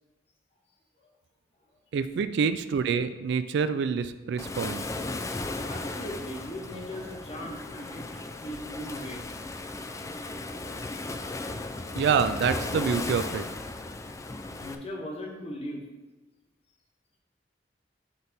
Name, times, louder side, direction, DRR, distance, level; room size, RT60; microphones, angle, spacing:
voice 1, 1.9-4.8 12.0-13.4, right 6 dB, 65° right, 11 dB, 0.3 m, -27 dB
Waves surf, 4.4-14.7, left 2 dB, 15° left, 0.3 m, -36 dB
voice 2, 5.7-8.0 8.4-9.3 14.6-15.8, equal, 35° left, -1 dB, 1.2 m, -38 dB
7.7 x 3.5 x 4.0 m, 1.1 s
head